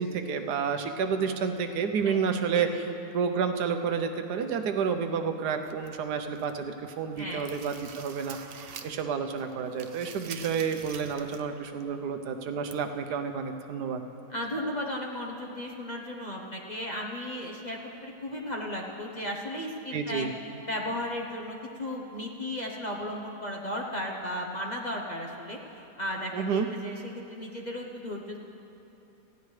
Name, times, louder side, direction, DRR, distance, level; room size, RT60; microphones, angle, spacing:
voice 1, 0.0-2.7 3.1-14.0 19.9-20.3 26.3-26.7, right 6 dB, 80° right, 7 dB, 1.3 m, -30 dB
voice 2, 2.0-2.9 7.1-7.5 14.3-20.3 20.7-25.6 26.0-28.4, left 1 dB, 35° left, -1 dB, 0.8 m, -35 dB
sound 1, 5.6-6.7 7.0-9.1 9.4-11.5 11.8-11.9 12.7-12.8, right 7 dB, 60° right, 0.6 m, -46 dB
18.5 x 15.0 x 3.3 m, 2.9 s
omnidirectional pair, 1.7 m